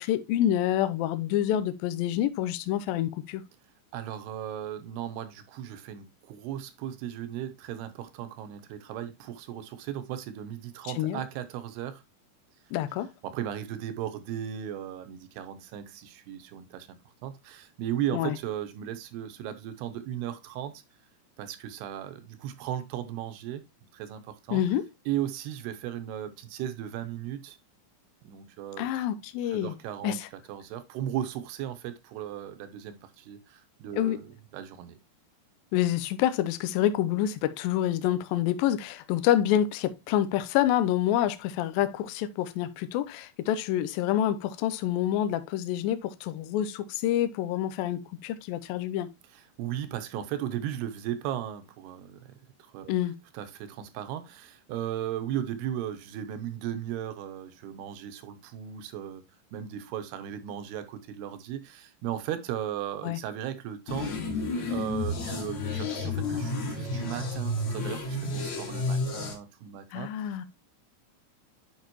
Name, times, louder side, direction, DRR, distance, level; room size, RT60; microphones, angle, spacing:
voice 1, 0.0-3.4 11.0-11.2 12.7-13.1 18.1-18.3 24.5-24.8 28.8-29.7 30.0-30.3 34.0-34.2 35.7-49.1 52.9-53.1 63.0-63.2 69.9-70.5, left 11 dB, 85° left, 2.1 m, -27 dB
voice 2, 3.9-12.0 13.2-16.9 17.2-20.8 21.4-23.6 23.9-24.6 25.1-27.6 28.2-29.1 29.4-30.2 30.5-34.3 34.5-35.0 49.3-52.3 52.7-52.9 53.3-59.2 59.5-70.1, right 11 dB, 80° right, 2.7 m, -36 dB
sound 1, 63.9-69.3, left 2 dB, 50° left, 2.4 m, -31 dB
9.4 x 5.1 x 3.0 m
omnidirectional pair, 5.0 m